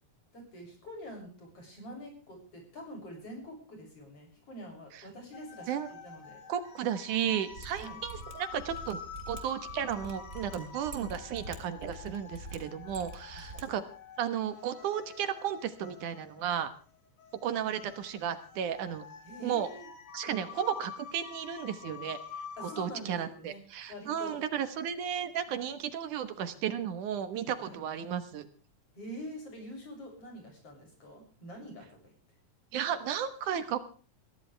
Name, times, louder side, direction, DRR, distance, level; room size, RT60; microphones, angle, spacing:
voice 1, 0.3-6.4 7.8-8.0 13.3-13.7 19.2-19.9 22.6-23.6 23.9-24.4 27.6-27.8 28.9-32.1, equal, 45° left, 2 dB, 8.2 m, -46 dB
sound 1, 5.3-22.9, left 5 dB, 80° left, 3.5 m, -48 dB
voice 2, 6.5-9.0 9.3-13.8 14.2-16.7 17.4-19.1 19.4-19.7 20.1-22.2 22.6-28.5 32.7-33.8, right 9 dB, 75° right, 11 dB, 2.8 m, -34 dB
Mechanisms, 7.5-13.6 13.9-14.0, right 2 dB, 25° right, 2.9 m, -45 dB
22.5 x 16.0 x 3.4 m, 0.39 s
omnidirectional pair, 3.6 m